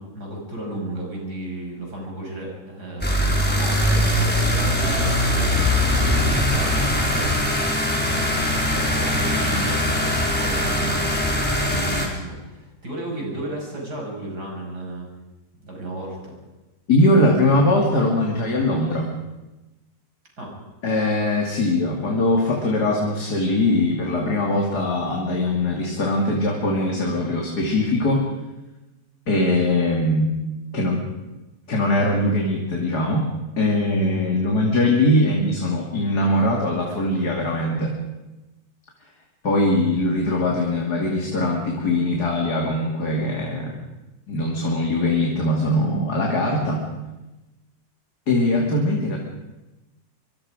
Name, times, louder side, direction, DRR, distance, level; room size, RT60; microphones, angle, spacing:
voice 1, 0.0-7.5 8.0-15.1 15.6-16.4 20.4-20.5, right 1 dB, 85° right, -1 dB, 6.9 m, -34 dB
sound 1, 3.0-12.1, left 1 dB, 5° left, 3.7 m, -21 dB
voice 2, 16.9-19.1 20.8-28.2 29.3-30.3 30.7-31.0 31.7-33.3 33.6-37.9 39.4-43.7 44.3-46.8 48.3-49.2, left 1 dB, 80° left, 0 dB, 3.2 m, -21 dB
24.5 x 24.5 x 5.1 m, 1.1 s
omnidirectional pair, 1.7 m